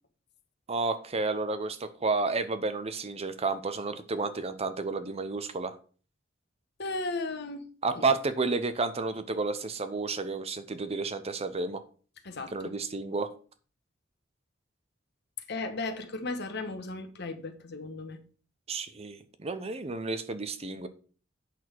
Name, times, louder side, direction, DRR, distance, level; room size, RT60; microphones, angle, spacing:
voice 1, 0.7-5.8 7.8-11.8 12.5-13.3 18.7-20.9, right 3 dB, 30° right, 11 dB, 0.7 m, -31 dB
voice 2, 6.8-7.7 7.9-8.0 12.2-12.7 15.5-18.2, left 3 dB, 60° left, 7 dB, 1.2 m, -35 dB
8.4 x 6.2 x 4.6 m, 0.40 s
head